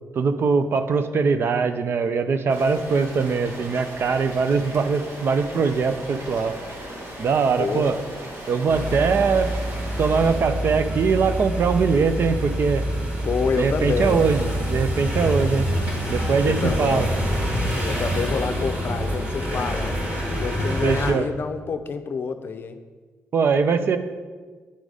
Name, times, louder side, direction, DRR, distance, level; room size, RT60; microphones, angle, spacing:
voice 1, 0.1-6.6 7.2-8.0 8.5-9.5 10.0-12.8 13.6-15.7 16.1-17.1 20.8-21.3 23.3-24.0, right 5 dB, 50° right, 10 dB, 0.5 m, -21 dB
Rain, 2.5-10.4, right 1 dB, 75° right, 1.6 m, -38 dB
voice 2, 7.6-8.0 13.2-14.2 16.4-17.2 17.8-20.0 20.4-22.8, left 5 dB, 50° left, 9 dB, 0.5 m, -28 dB
sound 1, 8.7-21.1, equal, 35° right, 1.6 m, -26 dB
10.0 x 4.0 x 4.8 m, 1.4 s
cardioid pair, 130°, 5 cm